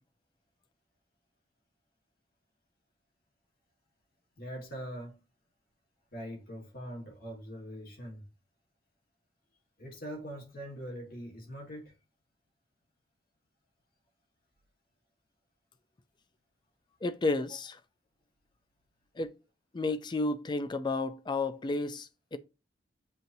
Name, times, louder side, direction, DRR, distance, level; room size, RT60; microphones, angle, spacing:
voice 1, 4.4-5.2 6.1-8.3 9.8-12.0, equal, 50° left, 1.5 m, -42 dB
voice 2, 17.0-17.8 19.2-19.3 19.7-22.4, left 3 dB, 25° left, 0.4 m, -32 dB
7.4 x 2.6 x 2.7 m
head